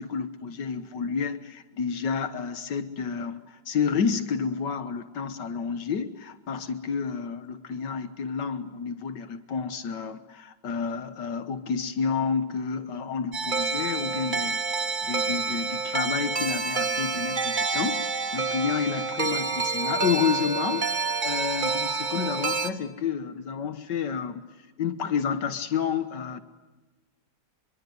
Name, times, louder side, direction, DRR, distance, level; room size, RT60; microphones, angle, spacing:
voice 1, 0.0-18.1 18.3-20.9 21.2-24.5 24.8-26.4, left 6 dB, 80° left, 10 dB, 1.9 m, -30 dB
sound 1, 13.3-22.7, right 4 dB, 30° right, 1.3 m, -28 dB
25.0 x 23.5 x 9.3 m, 1.2 s
omnidirectional pair, 1.9 m